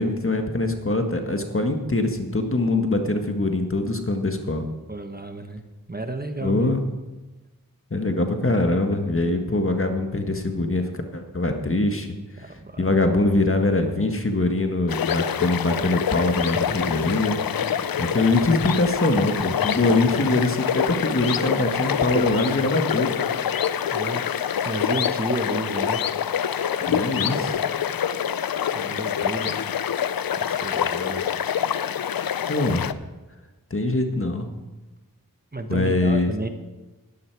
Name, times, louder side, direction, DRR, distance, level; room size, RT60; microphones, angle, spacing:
voice 1, 0.0-4.6 6.4-6.8 7.9-10.8 11.1-12.1 12.5-17.4 18.0-23.2 26.9-27.5 32.5-33.0 33.7-34.5 35.7-36.3, left 2 dB, 35° left, 5 dB, 1.6 m, -23 dB
voice 2, 4.9-6.8 12.4-12.9 16.4-17.1 19.5-20.3 21.8-22.7 23.9-24.3 24.6-26.1 26.9-27.6 28.7-29.6 30.1-31.3 35.5-36.5, right 2 dB, 25° right, 7 dB, 1.2 m, -33 dB
sound 1, 14.9-32.9, left 8 dB, 80° left, 0.5 m, -26 dB
11.5 x 11.5 x 4.7 m, 1.1 s
cardioid pair, 40°, 35 cm